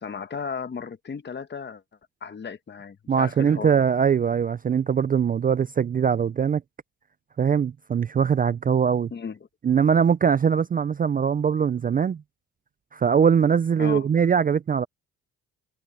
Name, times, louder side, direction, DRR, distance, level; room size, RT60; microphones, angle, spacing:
voice 1, 0.0-1.8 2.2-3.8 9.1-9.4 13.8-14.1, left 6 dB, 35° left, 1.4 m, -35 dB
voice 2, 3.1-6.6 7.4-9.1 9.6-12.2 12.9-14.9, right 7 dB, 30° right, 0.4 m, -21 dB
cardioid pair, 90°, 30 cm